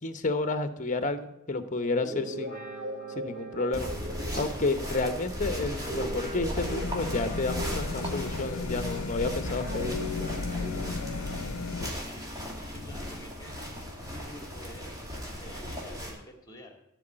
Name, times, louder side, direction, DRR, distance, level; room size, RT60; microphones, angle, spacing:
voice 1, 0.0-2.6 3.1-3.9 4.4-10.0, left 3 dB, 35° left, 10 dB, 0.9 m, -30 dB
Guitar, 1.9-9.1 9.6-13.3, equal, 40° right, 2.9 m, -40 dB
sound 1, 3.7-16.1, equal, 15° right, 2.6 m, -37 dB
sound 2, 6.6-11.9, left 4 dB, 80° left, 0.6 m, -35 dB
voice 2, 12.7-13.5 14.1-15.0 15.4-16.8, equal, 15° left, 4 dB, 2.2 m, -48 dB
14.5 x 4.8 x 8.8 m, 0.85 s
head